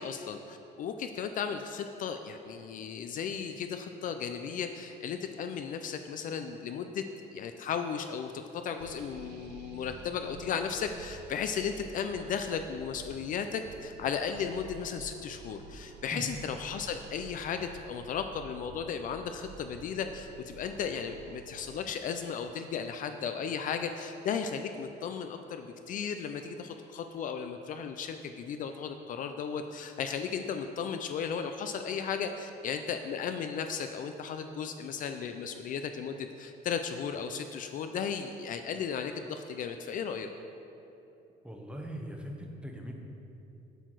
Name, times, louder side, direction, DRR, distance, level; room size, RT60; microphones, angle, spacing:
voice 1, 0.0-7.0 7.3-8.3 8.6-40.3, left 7 dB, 50° left, 7 dB, 0.4 m, -35 dB
sound 1, 8.8-21.9, right 6 dB, 85° right, 0.4 m, -51 dB
voice 2, 41.4-42.9, equal, 5° right, 1 dB, 0.8 m, -40 dB
7.9 x 4.5 x 4.6 m, 2.8 s
cardioid pair, 110°, 17 cm